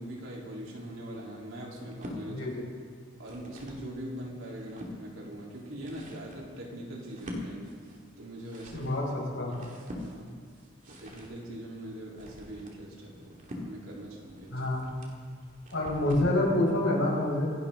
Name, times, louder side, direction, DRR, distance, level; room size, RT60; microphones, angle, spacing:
voice 1, 0.0-2.5 3.2-7.8 8.2-8.9 9.4-9.5 9.9-10.3 10.9-14.7, right 1 dB, 85° right, -4 dB, 3.8 m, -42 dB
sound 1, 1.8-2.2 3.0-3.9 4.3-5.0 5.6-16.4, left 1 dB, 40° right, 2.4 m, -45 dB
voice 2, 2.3-2.6 8.7-9.0 9.3-9.7 14.5-14.9 15.7-17.4, left 1 dB, 75° left, -4 dB, 5.2 m, -27 dB
26.5 x 11.5 x 3.9 m, 2.1 s
head